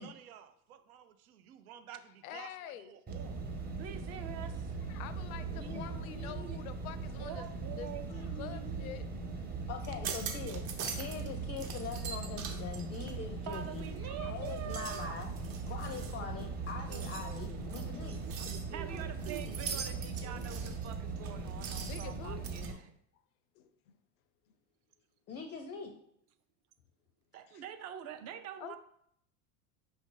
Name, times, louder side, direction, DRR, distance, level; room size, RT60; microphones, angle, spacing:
voice 1, 0.0-3.4 5.7-5.8 16.9-20.4, right 10 dB, 85° right, 10 dB, 0.6 m, -51 dB
voice 2, 2.2-3.0 4.9-9.1 9.4-9.5 14.0-14.4 21.8-22.8 23.6-24.0 28.6-28.8, left 10 dB, 75° left, 13 dB, 0.5 m, -47 dB
sound 1, 3.1-22.7, right 4 dB, 20° right, 0.9 m, -40 dB
voice 3, 3.8-4.8 5.5-6.6 7.2-8.9 13.4-15.2 15.6-15.7 18.7-22.9 27.3-28.8, right 10 dB, 40° right, 8 dB, 0.5 m, -45 dB
voice 4, 9.7-13.8 14.3-15.3 15.7-18.2 25.3-25.9, left 6 dB, 25° left, 5 dB, 0.5 m, -42 dB
sound 2, 9.8-11.3 11.6-14.0 14.4-22.7, right 6 dB, 60° right, 1.0 m, -44 dB
5.2 x 2.6 x 3.8 m, 0.71 s
hypercardioid pair, 95°, 42 cm